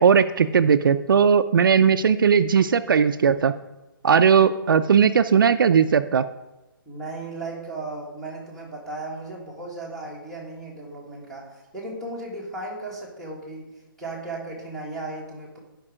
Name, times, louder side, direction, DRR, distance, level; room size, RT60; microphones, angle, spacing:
voice 1, 0.0-3.5 4.0-6.2, right 7 dB, 70° right, 11 dB, 0.5 m, -18 dB
voice 2, 6.9-15.6, right 2 dB, 5° left, -6 dB, 1.8 m, -36 dB
11.0 x 5.4 x 4.9 m, 1.0 s
hypercardioid pair, 165°, 12 cm